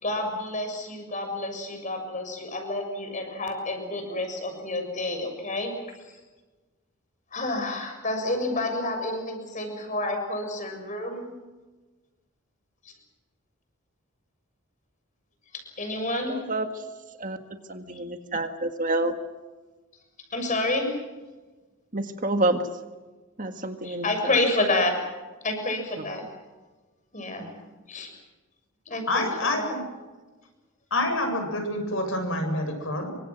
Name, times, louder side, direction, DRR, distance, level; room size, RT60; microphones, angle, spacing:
voice 1, 0.0-5.7 7.3-11.3 15.8-16.3 20.3-20.9 23.8-24.9 25.4-26.2 27.1-27.5 27.9-28.1 28.9-29.3 29.5-29.7, left 2 dB, 35° left, 5 dB, 6.7 m, -29 dB
voice 2, 16.3-16.8 17.2-17.4 17.7-19.1 21.9-22.6 23.4-24.3 27.4-27.5, right 2 dB, 35° right, 6 dB, 1.8 m, -28 dB
voice 3, 29.1-29.8 30.9-33.1, left 1 dB, 60° left, 4 dB, 7.7 m, -27 dB
28.0 x 25.0 x 6.2 m, 1.2 s
head